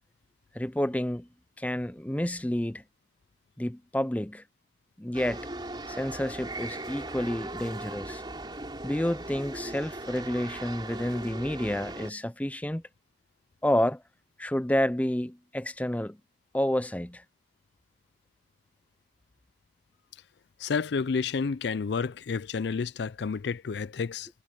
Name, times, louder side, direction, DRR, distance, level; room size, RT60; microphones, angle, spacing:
voice 1, 0.5-1.3 1.6-2.8 3.6-4.4 5.0-5.5 5.9-8.2 8.8-12.8 13.6-14.0 14.4-16.2 16.5-17.2, left 1 dB, 10° left, 0.5 m, -29 dB
sound 1, 5.1-12.1, right 2 dB, 25° right, 3.7 m, -39 dB
voice 2, 20.6-24.3, left 5 dB, 65° left, 0.4 m, -30 dB
head